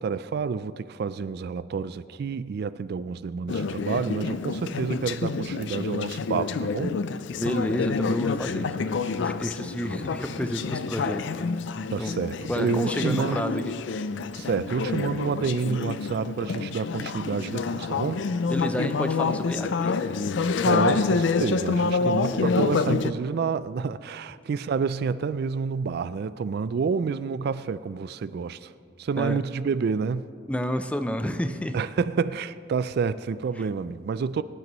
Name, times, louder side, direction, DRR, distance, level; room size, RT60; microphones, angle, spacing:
voice 1, 0.0-7.0 11.9-13.6 14.3-18.3 20.6-28.7 29.0-30.3 31.7-34.4, right 5 dB, 55° right, 0.3 m, -29 dB
Conversation / Chatter, 3.5-23.1, left 4 dB, 65° left, 0.4 m, -28 dB
voice 2, 7.4-11.4 12.0-12.1 12.5-13.8 18.5-19.9 22.0-22.5 29.2-29.4 30.5-31.8 33.6-33.7, equal, 5° left, 0.5 m, -30 dB
22.0 x 11.0 x 3.1 m
head